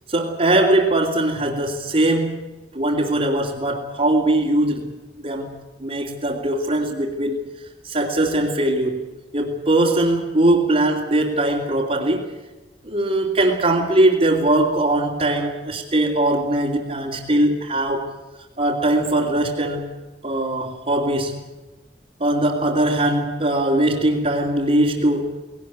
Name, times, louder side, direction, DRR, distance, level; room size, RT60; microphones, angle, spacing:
voice 1, 0.1-2.4 2.7-4.9 5.2-7.4 7.8-9.0 9.3-12.3 12.8-18.1 18.6-19.9 20.2-21.4 22.2-25.3, right 1 dB, 40° right, -4 dB, 2.9 m, -20 dB
20.0 x 18.5 x 9.4 m, 1.1 s
head